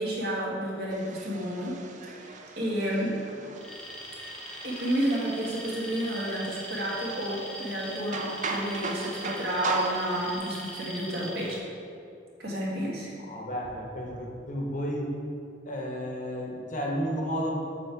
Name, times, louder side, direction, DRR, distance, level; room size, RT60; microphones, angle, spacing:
voice 1, 0.0-1.8 2.0-3.1 4.6-11.6 12.4-13.1, right 1 dB, 60° right, -5 dB, 1.6 m, -31 dB
sound 1, 0.9-10.4, right 3 dB, 40° right, 0.5 m, -39 dB
Alarm, 3.6-11.6, equal, 5° left, 0.6 m, -41 dB
voice 2, 13.3-15.1 15.7-17.7, equal, 40° left, -1 dB, 0.9 m, -32 dB
6.9 x 4.4 x 4.6 m, 2.4 s
head